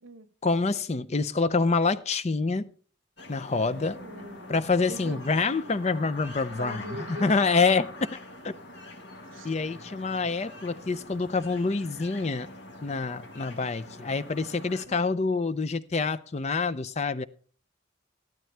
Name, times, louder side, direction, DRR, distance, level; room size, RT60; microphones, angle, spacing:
voice 1, 0.4-2.7 3.3-4.0 4.5-7.9 8.4-8.5 9.4-12.5 12.8-17.2, left 4 dB, 35° left, 0.5 m, -26 dB
sound 1, 3.2-14.9, left 2 dB, 60° left, 1.6 m, -44 dB
voice 2, 3.5-4.6 4.9-5.2 6.5-7.4 9.3-9.5 14.9-15.0, right 1 dB, 85° right, 0.9 m, -42 dB
14.0 x 12.0 x 3.4 m
head